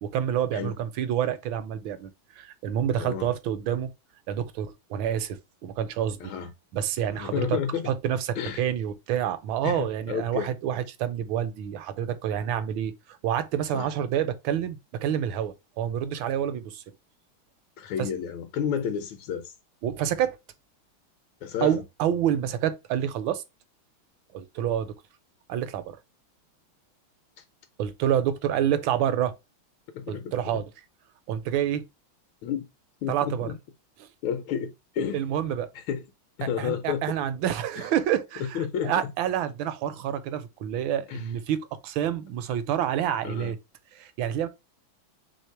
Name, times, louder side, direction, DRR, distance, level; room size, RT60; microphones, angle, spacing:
voice 1, 0.0-2.1 2.4-3.9 4.3-6.3 6.7-7.6 7.9-12.9 13.2-16.8 18.0-18.1 19.8-20.4 21.6-23.4 24.3-24.9 25.5-26.0 27.8-29.3 30.1-30.7 31.3-31.8 33.1-33.5 34.0-34.1 35.1-35.7 36.6-43.6 43.9-44.5, right 10 dB, 80° right, 1.3 m, -28 dB
voice 2, 3.0-3.3 6.2-6.5 7.1-7.9 8.4-8.6 9.6-10.5 13.7-13.9 17.8-19.5 21.4-21.8 27.4-27.5 29.9-30.6 32.4-32.7 33.0-33.5 34.2-35.2 35.7-36.0 36.4-37.2 37.8-37.9 38.4-39.1 41.1-41.3 43.2-43.5, left 8 dB, 80° left, 1.3 m, -31 dB
3.4 x 3.2 x 4.3 m
omnidirectional pair, 2.2 m